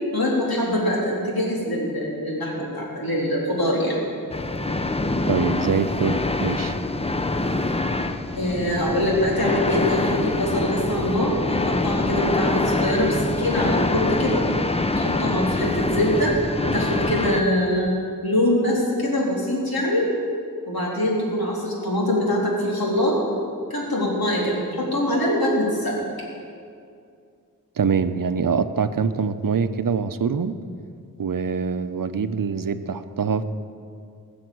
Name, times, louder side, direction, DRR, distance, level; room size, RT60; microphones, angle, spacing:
voice 1, 0.1-4.1 8.3-14.4 14.9-16.4 16.7-17.9 18.2-20.1 20.7-23.2 23.7-26.0, left 1 dB, 85° left, -4 dB, 3.6 m, -23 dB
sound 1, 4.3-17.4, left 2 dB, 15° left, 0.6 m, -25 dB
voice 2, 5.3-6.7 27.8-30.5 31.2-33.4, right 6 dB, 65° right, 11 dB, 0.7 m, -24 dB
19.0 x 7.1 x 7.8 m, 2.3 s
wide cardioid pair, 80°, 35 cm